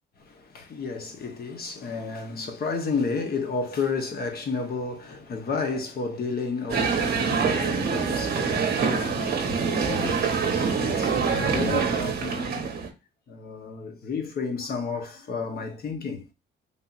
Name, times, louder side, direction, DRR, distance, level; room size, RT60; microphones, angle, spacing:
voice 1, 0.2-12.7 13.3-16.3, left 4 dB, 50° left, 0.9 m, -32 dB
sound 1, 6.7-12.9, right 5 dB, 50° right, 0.8 m, -25 dB
3.4 x 2.8 x 2.4 m
cardioid pair, 90°, 20 cm